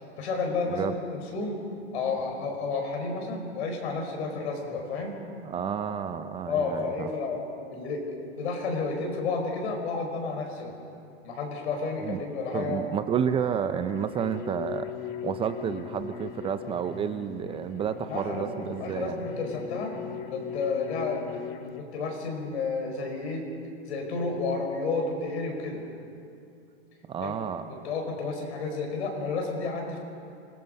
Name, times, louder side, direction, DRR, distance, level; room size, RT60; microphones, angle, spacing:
voice 1, 0.2-1.6 1.9-5.2 6.1-6.2 6.5-7.4 7.7-10.8 11.2-12.9 18.1-20.0 20.3-21.3 21.7-23.4 23.9-25.8 27.2-27.3 27.8-30.0, left 4 dB, 75° left, 2 dB, 5.2 m, -31 dB
voice 2, 5.4-7.1 12.0-12.2 12.5-14.9 15.2-19.2 27.1-27.9, right 8 dB, 15° right, 10 dB, 0.4 m, -30 dB
sound 1, 13.9-21.8, left 9 dB, 50° left, 1.3 m, -39 dB
26.5 x 18.5 x 5.3 m, 2.5 s
hypercardioid pair, 135°, 33 cm